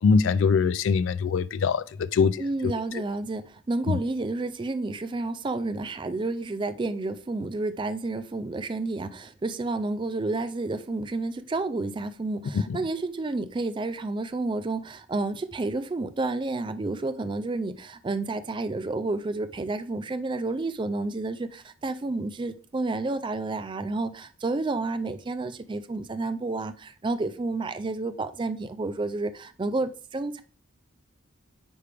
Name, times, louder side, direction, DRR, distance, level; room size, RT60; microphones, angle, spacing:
voice 1, 0.0-2.4 3.9-4.0, left 5 dB, 65° left, 0.3 m, -22 dB
voice 2, 2.4-30.4, right 2 dB, 25° right, 0.3 m, -30 dB
9.4 x 3.3 x 3.4 m
head